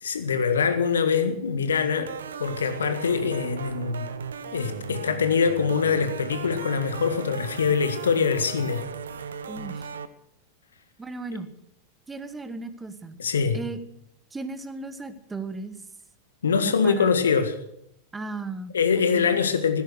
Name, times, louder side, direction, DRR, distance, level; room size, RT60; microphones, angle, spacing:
voice 1, 0.0-2.1 2.4-4.1 4.5-8.8 13.2-13.6 16.4-17.5 18.7-19.8, left 6 dB, 70° left, 9 dB, 1.7 m, -24 dB
sound 1, 2.1-10.1, right 6 dB, 70° right, 1.1 m, -37 dB
voice 2, 9.5-9.9 11.0-11.5 12.1-13.2 13.5-13.8 14.3-15.8 16.5-17.2 18.1-19.3, right 3 dB, 10° right, 11 dB, 1.2 m, -36 dB
15.5 x 13.5 x 6.3 m, 0.71 s
figure-of-eight pair, 90°, 0 cm